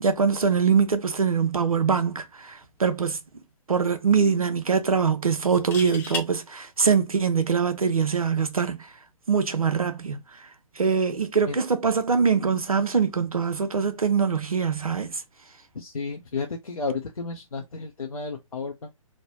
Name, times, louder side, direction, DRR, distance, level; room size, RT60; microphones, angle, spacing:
voice 1, 0.0-3.2 3.7-8.9 9.3-10.2 10.8-15.1, right 6 dB, 80° right, 0.6 m, -23 dB
sound 1, 2.6-2.8 3.2-3.3 5.4-6.3 8.1-8.3, left 4 dB, 10° left, 0.5 m, -34 dB
voice 2, 15.7-18.9, left 4 dB, 80° left, 0.6 m, -32 dB
3.1 x 2.2 x 2.8 m
figure-of-eight pair, 130°, 18 cm